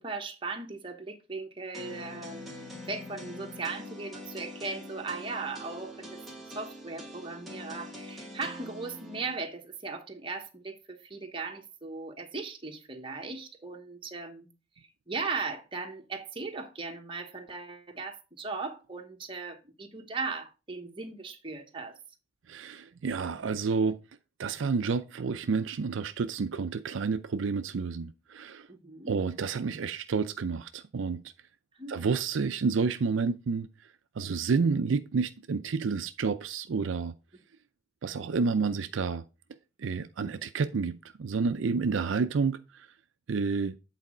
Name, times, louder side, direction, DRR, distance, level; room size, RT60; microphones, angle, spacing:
voice 1, 0.0-14.5 15.1-22.0 28.7-29.1 31.7-31.9, right 4 dB, 25° right, 1.1 m, -38 dB
sound 1, 1.7-9.4, left 1 dB, ahead, 1.5 m, -44 dB
voice 2, 22.5-24.0 24.4-28.7 29.1-31.2 31.9-33.7 34.2-37.1 38.0-39.2 39.8-42.9 43.3-43.7, right 5 dB, 75° right, 0.5 m, -29 dB
8.2 x 4.1 x 4.9 m
head